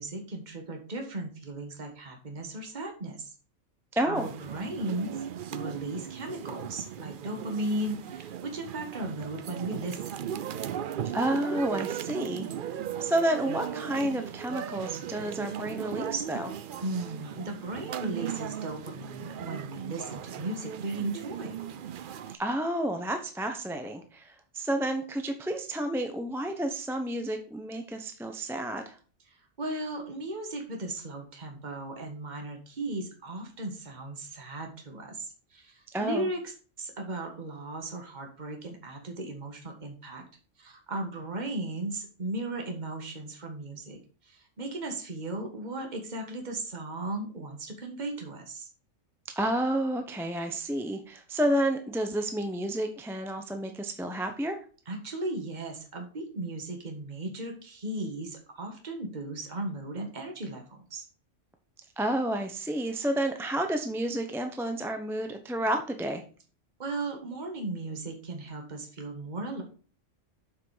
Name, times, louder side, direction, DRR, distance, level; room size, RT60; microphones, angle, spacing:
voice 1, 0.0-3.3 4.0-5.2 5.5-10.3 16.8-21.6 29.3-40.2 40.6-48.7 54.8-61.1 66.8-69.6, right 2 dB, 35° right, 3 dB, 1.7 m, -36 dB
voice 2, 3.9-4.3 11.1-12.5 13.0-16.5 22.4-29.0 35.9-36.3 49.3-54.6 62.0-66.2, right 1 dB, ahead, 5 dB, 0.8 m, -30 dB
sound 1, 4.1-22.4, right 9 dB, 55° right, 0.6 m, -37 dB
7.5 x 6.0 x 4.9 m, 0.39 s
omnidirectional pair, 1.3 m